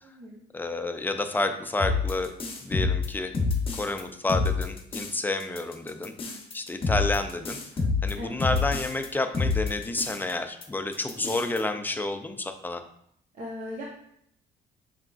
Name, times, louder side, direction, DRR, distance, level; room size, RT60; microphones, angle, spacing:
voice 1, 0.0-0.4 6.0-6.4 8.1-8.4 13.3-13.8, left 1 dB, 50° right, -3 dB, 0.9 m, -39 dB
voice 2, 0.5-2.3 2.6-3.3 3.7-6.1 6.5-7.6 8.0-12.8, left 2 dB, 10° left, 7 dB, 0.4 m, -29 dB
sound 1, 1.8-4.0 4.3-5.1 5.4-9.1 9.3-10.3 10.6-10.7 10.9-11.6, left 4 dB, 35° left, 0.8 m, -28 dB
5.6 x 3.6 x 2.3 m, 0.71 s
cardioid pair, 110°, 17 cm